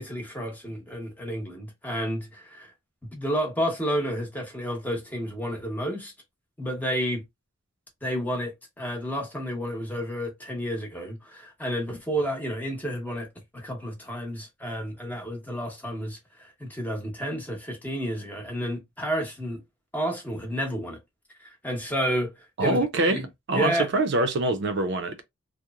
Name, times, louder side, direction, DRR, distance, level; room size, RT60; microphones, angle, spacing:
voice 1, 0.0-2.7 3.1-6.1 6.6-7.2 8.0-13.3 13.5-19.6 19.9-21.0 21.4-22.8 23.0-23.3 23.5-23.9, equal, 10° left, 0.8 m, -31 dB
voice 2, 22.6-23.2 23.5-25.2, right 2 dB, 60° right, 0.5 m, -24 dB
2.9 x 2.0 x 2.3 m
head